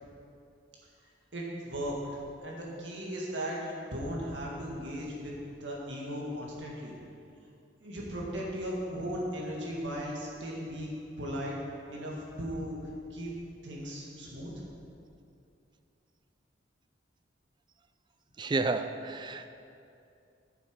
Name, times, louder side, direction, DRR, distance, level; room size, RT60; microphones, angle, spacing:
voice 1, 1.3-2.0 2.4-6.9 7.8-11.6 11.9-12.8 13.1-13.4 13.6-14.5, equal, 80° right, -3 dB, 1.8 m, -37 dB
voice 2, 18.4-19.5, right 3 dB, 25° right, 10 dB, 0.3 m, -31 dB
7.8 x 6.8 x 5.2 m, 2.6 s
head